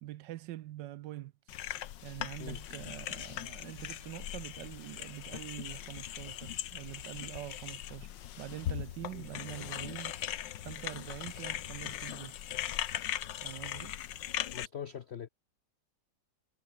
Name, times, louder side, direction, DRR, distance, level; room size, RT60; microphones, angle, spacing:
voice 1, 0.0-1.6 2.0-8.1 8.4-10.2 10.6-12.4 13.4-14.0, right 15 dB, 75° right, 1.2 m, -45 dB
sound 1, 1.5-14.7, left 11 dB, 70° left, 1.6 m, -40 dB
sound 2, 5.0-13.1, right 2 dB, 50° right, 7.1 m, -72 dB
voice 2, 14.5-15.3, left 8 dB, 90° left, 0.5 m, -42 dB
omnidirectional pair, 2.1 m